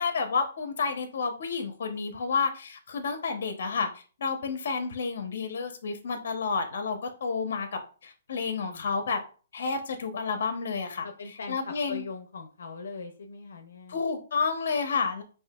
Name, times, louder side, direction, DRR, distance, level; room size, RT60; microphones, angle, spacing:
voice 1, 0.0-3.9 4.2-9.2 9.5-12.0 13.9-15.2, left 5 dB, 60° left, 6 dB, 0.9 m, -30 dB
voice 2, 11.0-14.0, left 4 dB, 85° left, 5 dB, 0.6 m, -41 dB
5.4 x 2.7 x 2.4 m, 0.37 s
hypercardioid pair, 170°, 0 cm